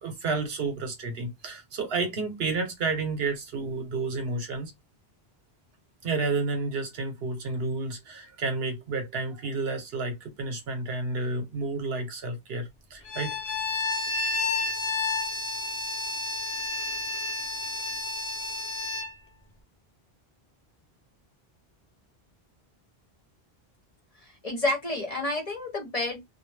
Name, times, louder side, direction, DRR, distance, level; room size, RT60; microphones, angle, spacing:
voice 1, 0.0-4.7 6.0-13.3, right 3 dB, 75° right, 1.0 m, -31 dB
Bowed string instrument, 13.1-19.1, left 3 dB, 85° left, 1.0 m, -30 dB
voice 2, 24.2-26.2, left 2 dB, 40° left, 0.8 m, -30 dB
2.5 x 2.0 x 3.2 m
omnidirectional pair, 1.0 m